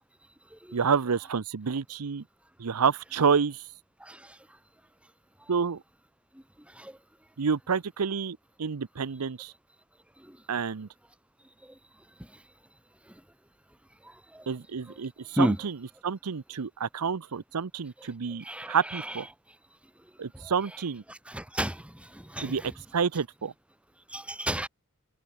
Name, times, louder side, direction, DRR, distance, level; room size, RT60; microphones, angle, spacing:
voice 1, 0.7-2.2 2.6-3.6 5.5-5.8 7.4-9.5 10.5-10.9 14.5-15.8 16.0-19.3 20.2-21.0 22.4-22.6 22.9-23.5, right 6 dB, 85° right, 0.7 m, -29 dB
voice 2, 18.4-18.8 21.3-21.8 22.1-22.5 24.1-24.7, equal, 5° right, 2.1 m, -30 dB
head